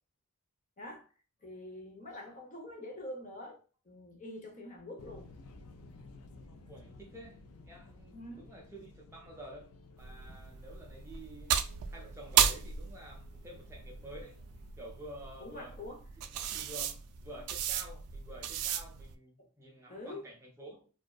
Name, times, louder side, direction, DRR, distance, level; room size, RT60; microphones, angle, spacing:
voice 1, 0.8-1.1 1.4-3.6 3.8-5.3 8.1-8.5 15.4-16.0 19.9-20.2, left 1 dB, 35° left, 0.7 m, -45 dB
sound 1, 5.0-14.7, left 2 dB, 80° left, 0.4 m, -55 dB
voice 2, 6.7-14.4 14.8-15.7 16.2-20.9, right 1 dB, 10° right, 0.4 m, -50 dB
sound 2, 10.0-19.1, right 9 dB, 90° right, 0.3 m, -35 dB
2.7 x 2.2 x 2.3 m
head